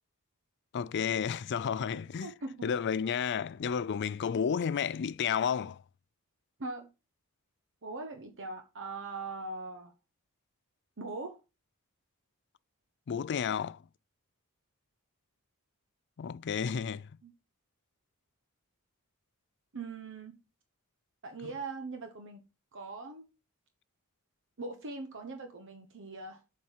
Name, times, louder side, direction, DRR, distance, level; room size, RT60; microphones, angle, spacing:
voice 1, 0.7-2.3 2.6-5.8 13.1-13.8 16.2-17.1, left 7 dB, 50° left, 0.4 m, -31 dB
voice 2, 2.2-2.7 6.6-6.9 7.8-9.9 11.0-11.4 17.2-17.3 19.7-20.4 21.2-22.4 22.7-23.3 24.6-26.4, right 3 dB, 60° right, 1.0 m, -41 dB
7.6 x 4.3 x 5.6 m
head